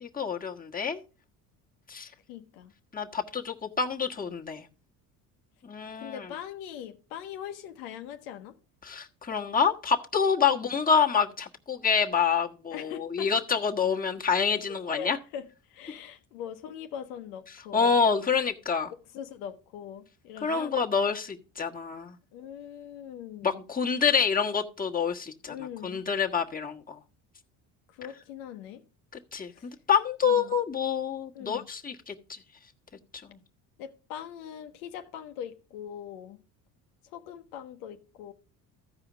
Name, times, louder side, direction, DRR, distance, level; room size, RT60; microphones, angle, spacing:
voice 1, 0.0-1.0 1.9-2.1 2.9-4.7 5.6-6.3 8.8-15.2 17.7-18.9 20.4-22.2 23.4-25.5 25.8-27.0 29.3-29.5 29.9-32.4 33.3-33.4, left 6 dB, 20° left, 1.4 m, -27 dB
voice 2, 2.3-2.7 6.0-8.6 10.5-10.7 12.7-13.3 14.9-18.0 19.1-20.8 22.3-23.6 25.5-26.0 27.9-28.8 29.5-29.7 30.2-30.5 31.3-31.7 33.8-36.4 37.1-38.3, left 9 dB, 75° left, 0.9 m, -41 dB
14.0 x 4.9 x 5.0 m
hypercardioid pair, 60°, 46 cm